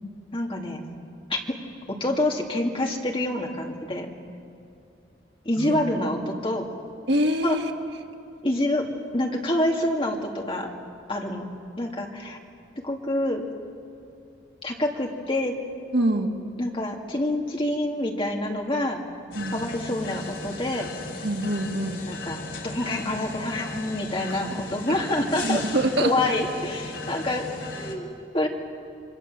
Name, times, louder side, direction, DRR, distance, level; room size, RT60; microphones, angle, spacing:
voice 1, 0.3-0.8 1.3-1.4 1.9-4.1 5.4-6.7 7.4-7.6 8.4-8.8 9.1-10.7 11.1-11.4 11.8-12.4 12.8-13.4 14.6-15.5 16.6-19.0 19.5-20.9 22.1-25.7 26.0-27.5 27.7-28.1 28.3-28.5, left 1 dB, 30° left, 0 dB, 2.5 m, -27 dB
voice 2, 7.1-7.7 15.9-16.4 19.3-19.6 21.2-22.0 24.5-24.6 24.9-25.0 25.4-26.1, right 1 dB, 70° right, 2 dB, 2.1 m, -25 dB
sound 1, 19.3-28.0, left 3 dB, 85° left, 3.7 m, -36 dB
28.0 x 24.0 x 7.5 m, 2.7 s
head